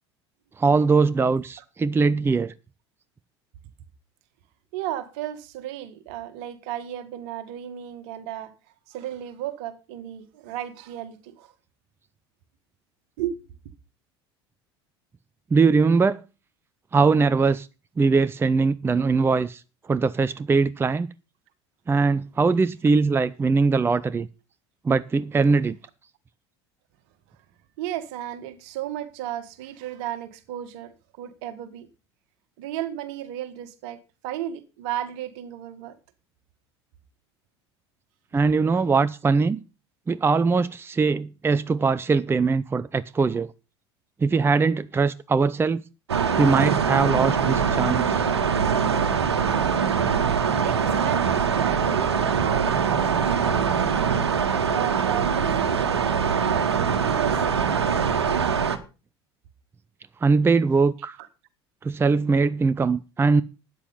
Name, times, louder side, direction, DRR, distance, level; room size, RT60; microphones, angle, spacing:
voice 1, 0.6-2.5 15.5-16.2 16.9-17.7 18.0-19.6 19.9-21.1 21.9-24.3 24.8-25.8 38.3-39.6 40.1-43.5 44.2-45.8 46.4-48.3 60.2-61.2 61.8-63.4, right 4 dB, 15° right, 0.6 m, -21 dB
voice 2, 4.7-8.5 8.9-11.5 13.2-13.4 27.8-31.9 32.6-36.0 50.6-54.0 54.7-57.9 61.2-61.3, right 12 dB, 60° right, 1.8 m, -34 dB
sound 1, 46.1-58.8, right 6 dB, 75° right, 1.4 m, -23 dB
13.0 x 9.2 x 5.5 m
figure-of-eight pair, 65°, 14 cm